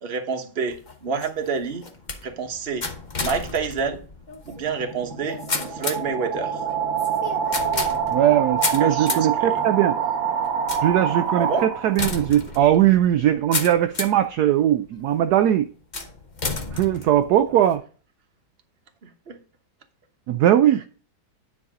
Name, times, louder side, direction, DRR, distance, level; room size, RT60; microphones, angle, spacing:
voice 1, 0.0-1.8 2.2-2.9 3.2-4.0 4.5-5.4 5.7-6.6 8.8-9.6 11.4-11.7 19.0-19.4, right 5 dB, 40° right, 1.2 m, -28 dB
sound 1, 0.7-14.3 14.9-15.3 15.9-17.7, left 3 dB, 30° left, 0.9 m, -33 dB
sound 2, 4.5-12.2, right 7 dB, 55° right, 1.9 m, -26 dB
voice 2, 8.1-9.9 10.8-15.7 16.7-17.8 20.3-20.8, right 11 dB, 70° right, 1.0 m, -19 dB
9.6 x 4.8 x 4.9 m
omnidirectional pair, 1.9 m